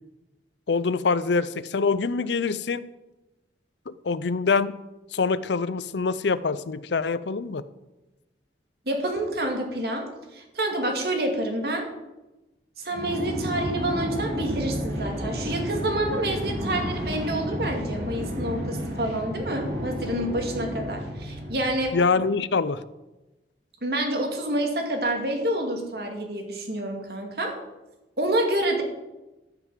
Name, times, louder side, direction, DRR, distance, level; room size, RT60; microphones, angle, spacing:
voice 1, 0.7-2.9 3.9-4.8 5.1-7.6 21.9-22.8, left 4 dB, 80° left, 16 dB, 0.6 m, -25 dB
voice 2, 8.9-10.1 10.3-11.9 12.8-21.9 23.8-27.5 28.2-28.8, right 1 dB, 60° right, 3 dB, 2.3 m, -28 dB
sound 1, 12.9-21.9, equal, 75° right, 3.2 m, -31 dB
13.0 x 6.0 x 7.3 m, 1.0 s
head